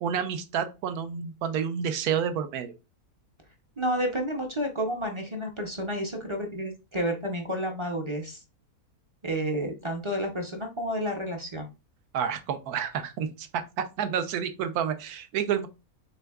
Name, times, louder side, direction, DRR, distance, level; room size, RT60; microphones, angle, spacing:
voice 1, 0.0-2.7 12.1-15.7, right 8 dB, 85° right, 9 dB, 1.2 m, -29 dB
voice 2, 3.8-8.4 9.2-11.7, equal, 40° right, 3 dB, 0.4 m, -30 dB
6.7 x 3.4 x 2.3 m, 0.28 s
omnidirectional pair, 1.6 m